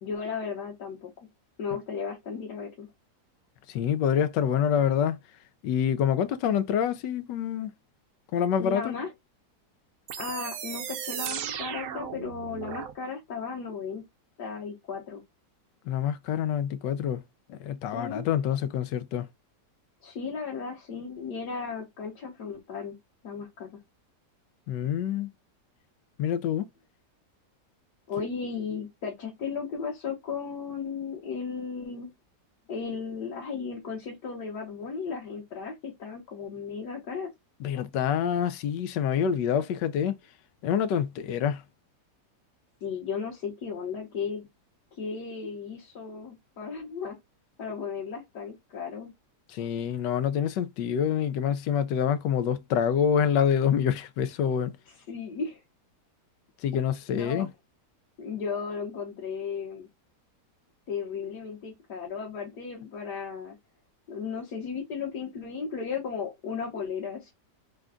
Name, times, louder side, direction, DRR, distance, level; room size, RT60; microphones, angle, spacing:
voice 1, 0.0-1.1 1.6-2.9 8.6-9.1 10.2-14.0 14.4-15.2 17.9-18.2 20.0-23.0 23.2-23.7 28.1-32.1 32.7-37.3 42.8-44.5 45.0-47.2 47.6-49.1 55.1-55.6 57.1-57.5 58.2-59.9 60.9-63.6 64.1-67.3, left 5 dB, 70° left, 1.8 m, -35 dB
voice 2, 3.7-5.2 5.6-7.7 8.3-8.9 15.9-17.2 17.5-19.3 24.7-25.3 26.2-26.7 37.6-40.1 40.6-41.6 49.5-54.7 56.6-57.5, left 8 dB, 85° left, 1.3 m, -26 dB
sound 1, 10.1-12.9, right 9 dB, 65° right, 0.8 m, -36 dB
3.9 x 2.3 x 3.6 m
omnidirectional pair, 1.8 m